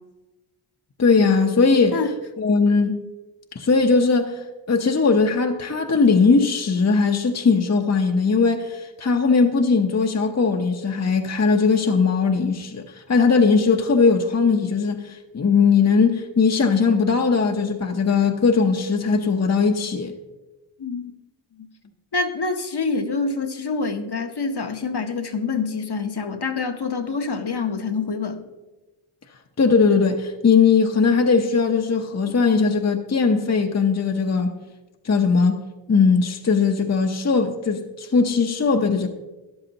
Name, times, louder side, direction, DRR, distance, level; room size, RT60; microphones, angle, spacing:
voice 1, 1.0-2.0 2.4-3.0 3.5-4.4 4.7-20.1 29.6-34.6 35.0-35.6 35.9-39.1, left 4 dB, 35° left, 0.9 m, -19 dB
voice 2, 20.8-21.1 21.5-21.7 22.1-28.5, left 4 dB, 55° left, 1.2 m, -26 dB
13.5 x 10.5 x 2.9 m
cardioid pair, 45°, 49 cm